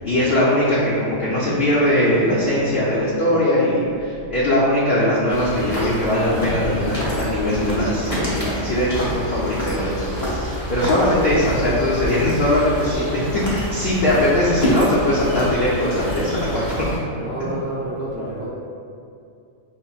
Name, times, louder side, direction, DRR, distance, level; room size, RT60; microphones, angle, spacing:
voice 1, 0.0-16.9, left 1 dB, 60° left, -9 dB, 0.7 m, -20 dB
sound 1, 5.3-17.0, equal, 30° left, 0.8 m, -27 dB
voice 2, 10.8-11.3 17.1-18.5, right 1 dB, 30° right, -12 dB, 0.8 m, -30 dB
5.5 x 2.1 x 2.3 m, 2.5 s
omnidirectional pair, 1.3 m